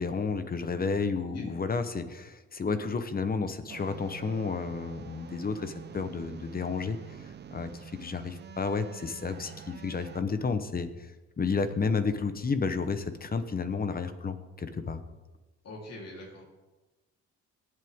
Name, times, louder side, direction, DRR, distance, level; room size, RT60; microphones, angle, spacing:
voice 1, 0.0-7.0 7.5-11.1 11.4-15.0, left 4 dB, 30° left, 10 dB, 0.9 m, -31 dB
sound 1, 3.7-10.2, right 8 dB, 35° right, 0.5 m, -46 dB
voice 2, 15.6-16.4, left 1 dB, 55° left, -3 dB, 3.7 m, -43 dB
17.5 x 7.8 x 3.7 m, 1.1 s
cardioid pair, 90°, 30 cm